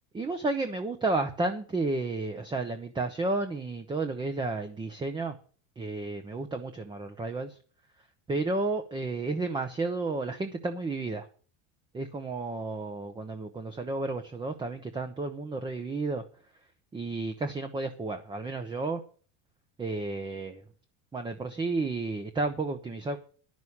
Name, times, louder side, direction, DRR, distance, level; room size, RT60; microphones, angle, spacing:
voice 1, 0.1-5.3 5.8-7.6 8.3-11.3 11.9-16.2 16.9-19.0 19.8-20.6 21.1-23.2, right 3 dB, 10° right, 7 dB, 0.8 m, -32 dB
11.0 x 6.3 x 8.5 m, 0.42 s
cardioid pair, 145°, 38 cm